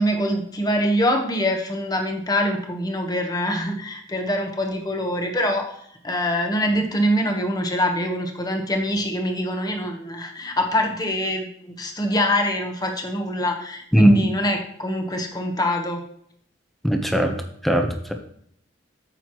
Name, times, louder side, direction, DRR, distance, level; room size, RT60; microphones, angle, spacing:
voice 1, 0.0-5.7 6.0-16.0, equal, 20° left, 3 dB, 1.2 m, -24 dB
voice 2, 16.8-17.4 17.6-18.1, equal, ahead, 3 dB, 0.9 m, -19 dB
9.1 x 7.9 x 3.1 m, 0.68 s
head